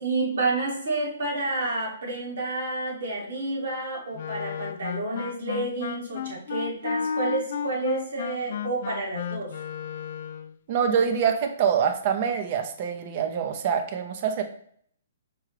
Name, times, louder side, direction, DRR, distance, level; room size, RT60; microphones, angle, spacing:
voice 1, 0.0-9.5, right 2 dB, 60° right, -3 dB, 1.7 m, -29 dB
Wind instrument woodwind instrument, 4.2-10.5, left 7 dB, 50° left, 0.3 m, -33 dB
voice 2, 10.7-14.4, right 7 dB, 40° right, 6 dB, 0.6 m, -25 dB
4.6 x 3.7 x 3.0 m, 0.62 s
figure-of-eight pair, 125°, 0 cm